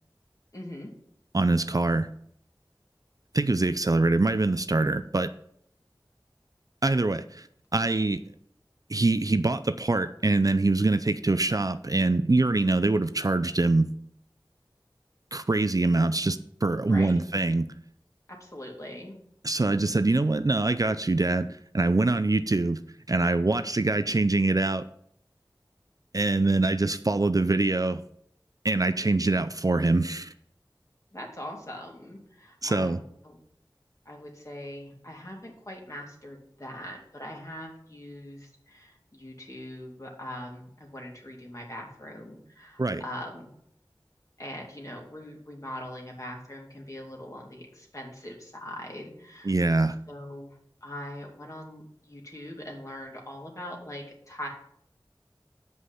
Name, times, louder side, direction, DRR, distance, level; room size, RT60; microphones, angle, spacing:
voice 1, 0.5-0.9 16.8-17.2 18.3-19.2 31.1-33.4 34.1-43.5 44.4-54.5, left 1 dB, 40° left, -1 dB, 2.4 m, -42 dB
voice 2, 1.3-2.1 3.3-5.3 6.8-7.5 7.7-8.2 8.9-13.9 15.3-17.7 19.4-21.5 21.7-22.8 23.1-24.8 26.1-28.0 28.6-30.3 32.6-33.0 42.8-43.0 49.5-50.0, right 2 dB, 45° right, 11 dB, 0.4 m, -24 dB
8.0 x 5.2 x 5.7 m, 0.68 s
wide cardioid pair, 40°, 8 cm